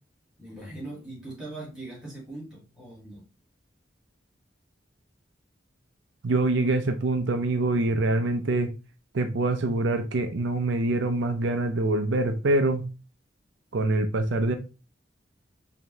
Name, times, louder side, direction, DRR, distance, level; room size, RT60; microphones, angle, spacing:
voice 1, 0.4-3.3, right 2 dB, 5° right, 2.2 m, -40 dB
voice 2, 6.2-8.7 9.1-12.8 13.7-14.6, right 2 dB, 75° right, 0.5 m, -25 dB
5.0 x 2.7 x 3.2 m
head